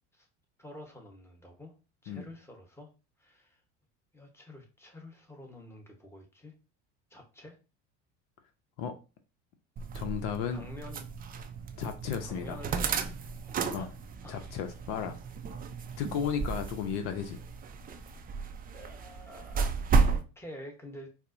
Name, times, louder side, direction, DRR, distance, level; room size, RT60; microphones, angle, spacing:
voice 1, 0.6-1.7 2.0-2.9 3.2-3.6 4.1-6.5 7.1-7.6 10.5-11.1 12.2-13.2 13.4-13.9 14.2-14.5 18.7-19.7 20.0-21.1, left 1 dB, 5° left, 2 dB, 1.1 m, -48 dB
sound 1, 9.8-20.2, right 5 dB, 25° right, 0.4 m, -33 dB
voice 2, 9.9-10.6 11.8-12.6 13.7-13.9 14.3-15.2 16.0-17.4, left 7 dB, 70° left, 7 dB, 0.6 m, -34 dB
4.3 x 2.1 x 2.6 m, 0.31 s
hypercardioid pair, 80°, 36 cm